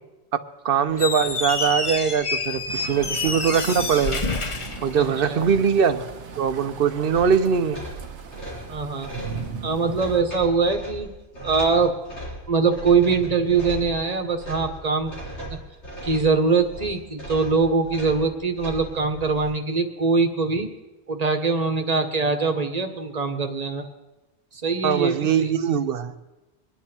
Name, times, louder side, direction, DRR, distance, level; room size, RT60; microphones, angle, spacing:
voice 1, 0.6-4.2 4.8-6.1 6.4-7.8 24.8-26.1, right 7 dB, 60° right, 11 dB, 0.9 m, -21 dB
Squeak, 0.9-5.6, left 3 dB, 30° left, 0.9 m, -28 dB
sound 1, 2.7-10.2, right 5 dB, 90° right, 1.3 m, -38 dB
sound 2, 7.0-19.5, right 1 dB, 90° left, 4.3 m, -38 dB
voice 2, 8.7-9.1 9.6-11.1 11.4-11.9 12.5-15.1 16.0-20.7 21.1-23.8 24.6-25.5, right 4 dB, 35° right, 6 dB, 1.2 m, -22 dB
24.0 x 10.0 x 4.4 m, 1.1 s
omnidirectional pair, 1.1 m